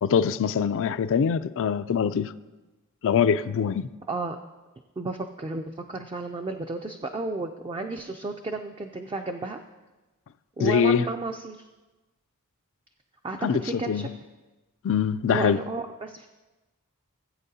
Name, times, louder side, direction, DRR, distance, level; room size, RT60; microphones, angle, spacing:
voice 1, 0.0-2.3 3.0-3.9 10.6-11.1 13.4-14.1 14.8-15.6, left 7 dB, 60° left, 0.3 m, -23 dB
voice 2, 5.0-9.6 10.6-11.6 13.2-14.1 15.3-16.3, right 3 dB, 25° right, 0.4 m, -32 dB
16.5 x 8.3 x 2.8 m
head